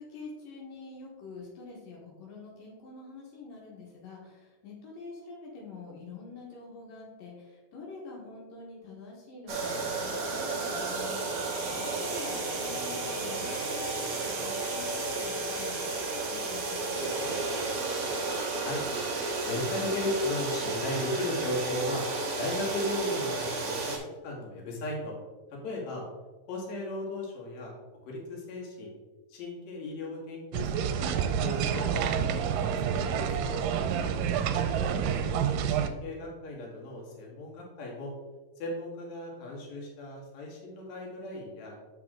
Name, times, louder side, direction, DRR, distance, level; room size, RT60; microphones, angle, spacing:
voice 1, 0.0-17.5 34.0-34.3, left 3 dB, 80° left, -3 dB, 3.0 m, -46 dB
sound 1, 9.5-24.0, right 3 dB, 50° right, 2.2 m, -32 dB
voice 2, 19.4-22.0 22.4-23.8 24.2-25.1 25.5-26.0 26.5-27.7 28.0-28.9 29.3-33.6 34.8-38.1 38.6-41.7, left 1 dB, 60° left, -3 dB, 2.8 m, -36 dB
sound 2, 30.5-35.9, right 8 dB, 85° right, 2.3 m, -28 dB
7.3 x 5.9 x 3.7 m, 1.3 s
omnidirectional pair, 3.9 m